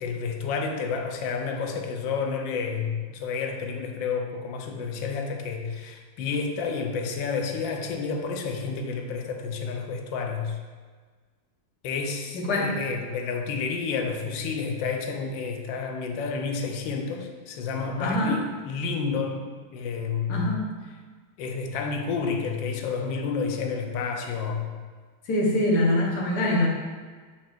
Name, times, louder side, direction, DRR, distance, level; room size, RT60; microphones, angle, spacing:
voice 1, 0.0-10.6 11.8-19.5 19.7-20.5 21.4-24.7, left 5 dB, 75° left, 3 dB, 1.4 m, -30 dB
voice 2, 12.3-12.7 18.0-18.4 20.3-20.6 25.3-26.7, left 1 dB, 55° left, -2 dB, 1.6 m, -24 dB
8.2 x 6.1 x 2.5 m, 1.5 s
omnidirectional pair, 2.2 m